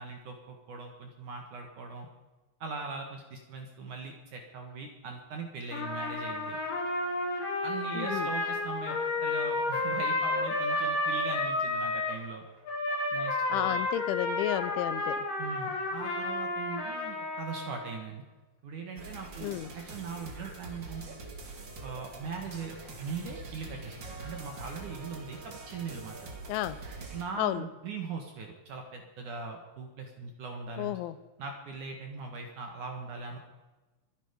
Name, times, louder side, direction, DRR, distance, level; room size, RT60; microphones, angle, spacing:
voice 1, 0.0-2.1 2.6-6.6 7.6-12.4 13.1-13.8 15.4-18.2 18.6-21.2 21.8-26.3 27.1-31.0 31.4-33.4, right 4 dB, 55° right, 3 dB, 2.4 m, -40 dB
Trumpet, 5.7-12.2 12.7-18.0, left 2 dB, 50° left, 4.1 m, -31 dB
voice 2, 8.0-8.3 13.5-15.2 19.4-19.7 26.5-26.8 27.4-27.7 30.8-31.1, left 14 dB, 85° left, 15 dB, 3.1 m, -32 dB
sound 1, 19.0-27.2, right 3 dB, 40° right, 1.8 m, -44 dB
23.5 x 10.5 x 5.2 m, 1.2 s
omnidirectional pair, 5.4 m